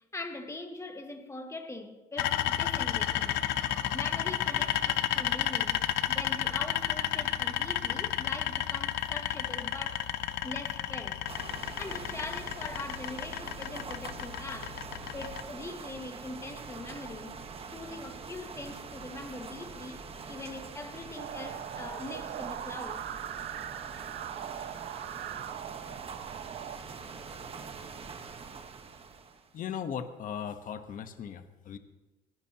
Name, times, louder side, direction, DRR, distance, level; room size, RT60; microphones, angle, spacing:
voice 1, 0.0-10.1 10.4-11.2 11.8-14.9 15.1-17.4 17.7-23.2, left 2 dB, 15° left, 1.8 m, -42 dB
sound 1, 2.2-15.4, left 12 dB, 90° left, 0.8 m, -32 dB
sound 2, 11.3-29.6, right 5 dB, 35° right, 1.3 m, -44 dB
sound 3, 21.2-26.8, right 11 dB, 65° right, 0.9 m, -40 dB
voice 2, 29.5-31.8, left 8 dB, 55° left, 1.1 m, -38 dB
22.0 x 16.0 x 2.9 m
cardioid pair, 110°, 17 cm